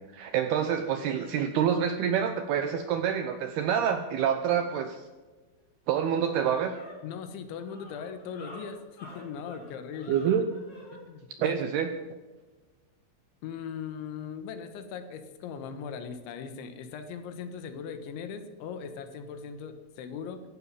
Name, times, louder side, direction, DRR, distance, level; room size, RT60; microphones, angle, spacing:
voice 1, 0.1-5.0 5.9-6.7 10.1-10.5 11.4-11.9, right 8 dB, 80° right, 8 dB, 2.4 m, -27 dB
sound 1, 5.6-5.7 6.0-11.0, left 1 dB, 15° left, 4.8 m, -49 dB
voice 2, 7.0-10.2 11.1-11.6 13.4-20.4, left 6 dB, 75° left, 9 dB, 3.6 m, -39 dB
16.0 x 11.0 x 7.5 m, 1.3 s
omnidirectional pair, 5.6 m